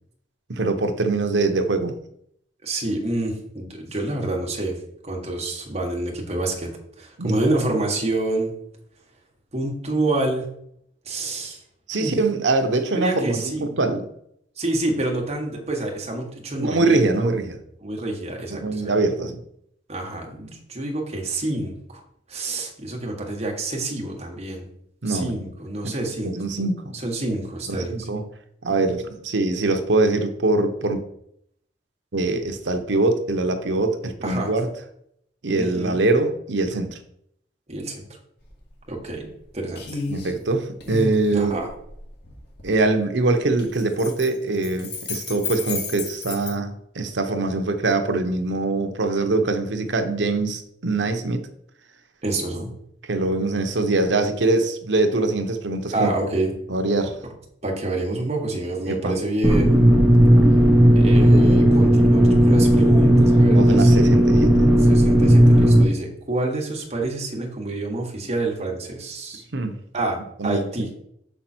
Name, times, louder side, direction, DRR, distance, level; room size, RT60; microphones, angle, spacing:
voice 1, 0.5-2.0 7.2-7.4 11.9-14.1 16.6-17.6 18.5-19.4 25.0-25.4 26.2-27.0 27.7-28.3 28.6-31.0 32.1-34.7 35.4-37.0 40.1-41.5 42.6-51.4 53.1-56.1 56.7-57.2 58.9-59.2 63.5-64.5 69.5-69.7 70.4-70.6, right 2 dB, 75° right, 6 dB, 0.9 m, -23 dB
voice 2, 2.6-4.8 5.0-6.7 7.0-8.5 9.5-10.4 11.0-11.6 12.0-12.1 12.9-13.7 14.6-17.3 17.8-18.9 19.9-22.0 22.3-24.7 25.0-26.3 27.0-28.1 34.2-34.5 35.5-36.0 37.7-38.1 38.9-40.0 41.3-41.7 52.2-52.7 55.9-56.5 57.6-59.8 60.9-64.0 64.8-69.4 69.9-70.9, right 2 dB, 35° right, 0 dB, 1.5 m, -27 dB
sound 1, 38.4-38.6 38.9-39.4 39.8-40.3 40.8-42.7 43.5-46.5, left 4 dB, 65° left, 1.9 m, -32 dB
sound 2, 59.4-65.8, equal, 5° right, 0.9 m, -14 dB
6.2 x 5.5 x 4.4 m, 0.73 s
head